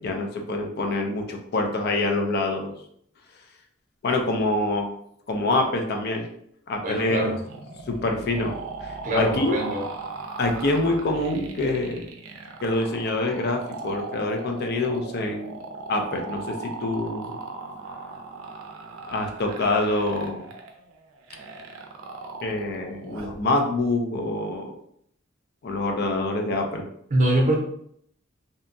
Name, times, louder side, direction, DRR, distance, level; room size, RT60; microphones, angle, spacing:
voice 1, 0.0-2.7 4.0-5.0 5.3-6.3 6.7-7.3 7.9-8.6 8.8-9.6 10.4-12.1 12.6-15.6 15.9-17.4 19.1-20.5 22.4-24.7 25.6-26.9, left 2 dB, 50° left, 3 dB, 0.4 m, -26 dB
voice 2, 6.8-7.4 9.0-9.9 27.1-27.5, right 1 dB, 40° right, -1 dB, 0.6 m, -23 dB
sound 1, 7.5-23.4, right 3 dB, 85° right, 0.4 m, -38 dB
2.7 x 2.2 x 2.5 m, 0.69 s
head